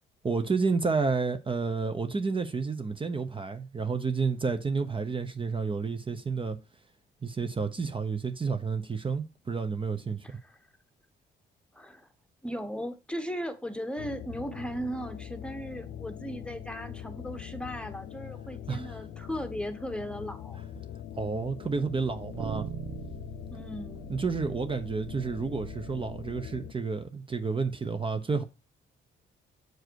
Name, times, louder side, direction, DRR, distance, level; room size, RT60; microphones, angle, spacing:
voice 1, 0.2-6.6 7.2-10.3 18.7-19.0 21.2-22.7 24.1-28.4, right 4 dB, 25° right, 0.9 m, -30 dB
voice 2, 10.2-10.7 11.7-12.1 12.4-20.6 23.5-24.1, equal, 5° left, 1.1 m, -37 dB
sound 1, 14.0-26.7, left 10 dB, 85° left, 0.7 m, -43 dB
sound 2, 20.7-20.8 22.3-26.4, right 10 dB, 80° right, 0.8 m, -43 dB
7.9 x 4.7 x 4.7 m
cardioid pair, 90°, 20 cm